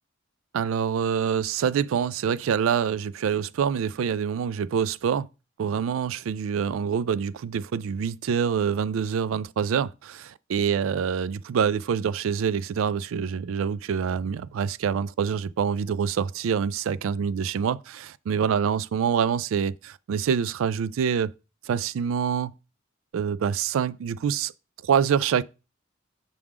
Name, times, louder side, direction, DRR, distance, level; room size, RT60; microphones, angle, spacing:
voice 1, 0.5-5.3 5.6-21.3 21.6-22.5 23.1-24.5 24.8-25.4, right 7 dB, 75° right, 0.3 m, -26 dB
6.1 x 3.6 x 4.8 m
head